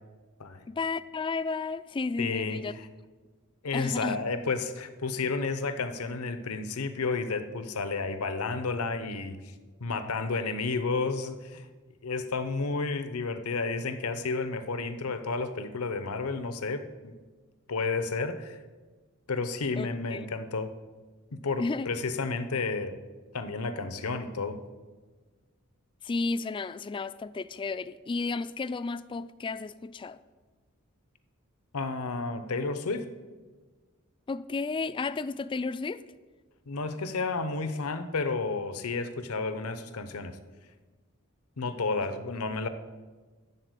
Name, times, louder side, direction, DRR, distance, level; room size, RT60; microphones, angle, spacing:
voice 1, 0.7-2.7 3.7-4.2 19.8-20.3 21.6-22.0 26.0-30.2 34.3-36.0, left 3 dB, 25° left, 0.3 m, -32 dB
voice 2, 2.2-2.9 3.6-9.5 9.8-11.7 12.0-17.2 17.7-18.6 19.3-20.7 21.3-22.9 23.3-24.6 31.7-33.1 36.7-40.3 41.6-42.7, left 4 dB, 85° left, 0.8 m, -31 dB
12.5 x 4.3 x 8.2 m
head